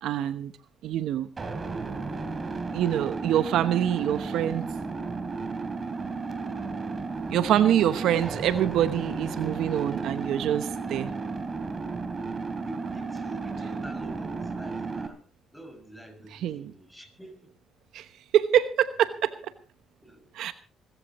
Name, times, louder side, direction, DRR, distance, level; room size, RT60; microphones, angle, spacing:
voice 1, 0.0-0.5 0.8-1.3 2.7-4.7 7.3-11.1 16.3-16.7 17.9-18.1 18.3-19.5 20.3-20.5, right 11 dB, 75° right, 0.9 m, -25 dB
sound 1, 1.4-15.1, right 4 dB, 35° right, 3.1 m, -33 dB
voice 2, 7.7-8.1 12.6-15.2 15.5-17.5 20.0-20.2, right 1 dB, 5° left, 6.2 m, -46 dB
25.5 x 14.5 x 3.1 m
supercardioid pair, 70°, 0 cm